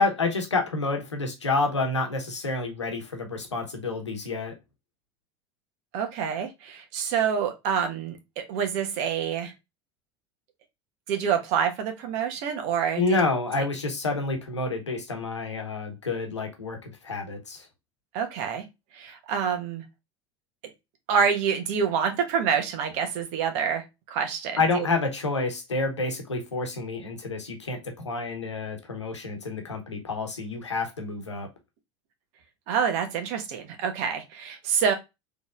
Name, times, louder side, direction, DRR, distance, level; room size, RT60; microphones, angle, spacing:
voice 1, 0.0-4.6 13.0-17.7 24.6-31.5, left 3 dB, 85° left, 0.9 m, -28 dB
voice 2, 5.9-9.5 11.1-13.2 18.1-18.6 18.9-19.8 21.1-24.9 32.7-34.9, right 7 dB, 55° right, 1.1 m, -27 dB
4.0 x 3.3 x 2.5 m
figure-of-eight pair, 75°, 15 cm